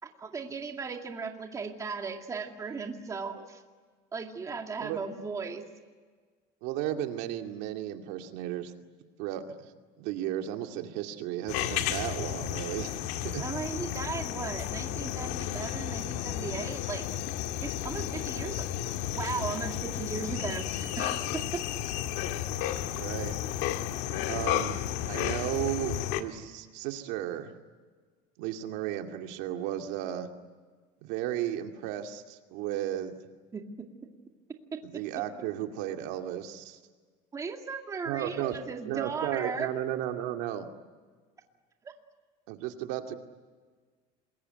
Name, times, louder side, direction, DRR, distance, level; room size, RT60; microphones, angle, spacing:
voice 1, 0.0-3.6 4.1-5.6 13.4-17.1 17.6-21.6 33.5-33.6 34.7-35.0 37.3-39.7 41.8-41.9, right 5 dB, 20° right, 3 dB, 2.2 m, -37 dB
voice 2, 6.6-8.7 9.2-9.7 10.0-13.4 23.0-23.4 24.3-24.8 25.1-27.5 28.4-30.3 31.0-33.2 34.9-36.8 38.0-38.6 38.9-40.7 42.5-43.2, right 12 dB, 75° right, 5 dB, 2.4 m, -34 dB
sound 1, 11.5-26.2, left 12 dB, 75° left, 1.9 m, -33 dB
27.5 x 22.0 x 9.3 m, 1.5 s
cardioid pair, 160°, 18 cm